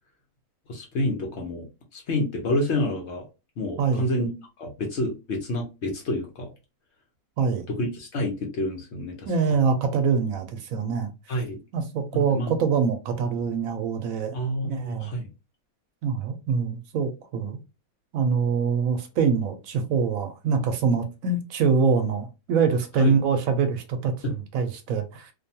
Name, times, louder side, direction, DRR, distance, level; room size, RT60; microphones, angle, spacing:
voice 1, 0.7-1.7 1.9-3.3 3.6-6.5 7.7-9.3 11.3-11.6 12.1-12.5 14.3-15.3 23.0-23.1 24.2-24.3, left 1 dB, 60° left, 0.9 m, -28 dB
voice 2, 9.3-11.1 11.7-14.4 14.6-15.1 16.0-17.6 18.1-25.3, right 5 dB, 75° right, 1.0 m, -24 dB
2.5 x 2.2 x 2.7 m
omnidirectional pair, 1.5 m